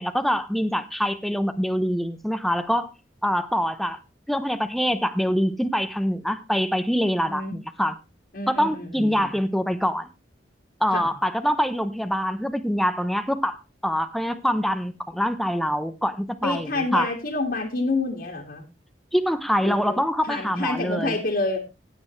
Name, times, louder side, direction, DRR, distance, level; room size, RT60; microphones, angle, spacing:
voice 1, 0.0-2.9 3.2-4.0 4.3-8.0 8.5-10.1 10.8-16.7 16.9-17.1 19.1-21.2, equal, ahead, 9 dB, 0.8 m, -24 dB
voice 2, 8.3-9.3 10.9-11.1 16.4-18.6 19.6-20.0 20.2-21.6, left 2 dB, 55° left, 0 dB, 2.1 m, -28 dB
16.5 x 8.8 x 3.2 m, 0.27 s
head